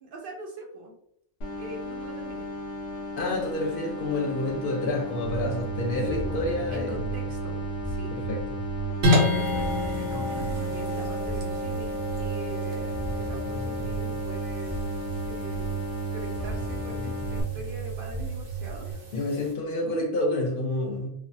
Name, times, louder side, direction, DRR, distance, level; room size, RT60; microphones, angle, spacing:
voice 1, 0.0-1.0 1.6-2.5 6.1-6.4 6.7-8.2 9.4-15.8 16.1-18.9, right 2 dB, 60° right, 0 dB, 0.7 m, -42 dB
sound 1, 1.4-17.4, left 2 dB, 80° left, 1.0 m, -36 dB
voice 2, 3.2-6.9 8.1-8.4 19.1-21.1, left 1 dB, 55° left, 1 dB, 0.8 m, -28 dB
sound 2, 5.2-18.9, right 5 dB, 5° left, 0.6 m, -34 dB
sound 3, 9.0-19.5, left 1 dB, 80° right, 1.0 m, -31 dB
3.3 x 2.0 x 2.6 m, 0.72 s
omnidirectional pair, 1.2 m